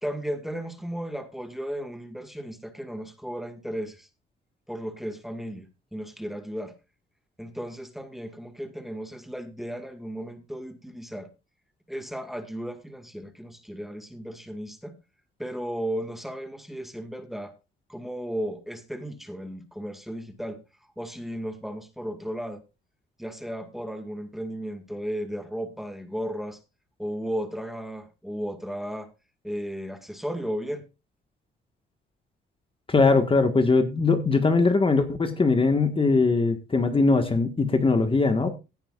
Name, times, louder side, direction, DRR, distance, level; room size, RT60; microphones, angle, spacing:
voice 1, 0.0-4.1 4.7-6.7 7.4-11.3 11.9-14.9 15.4-17.5 17.9-20.6 21.0-22.6 23.2-26.6 27.0-29.1 29.4-30.8, equal, ahead, 2.0 m, -35 dB
voice 2, 32.9-38.6, left 3 dB, 25° left, 1.7 m, -21 dB
16.5 x 10.0 x 2.5 m
cardioid pair, 90°, 20 cm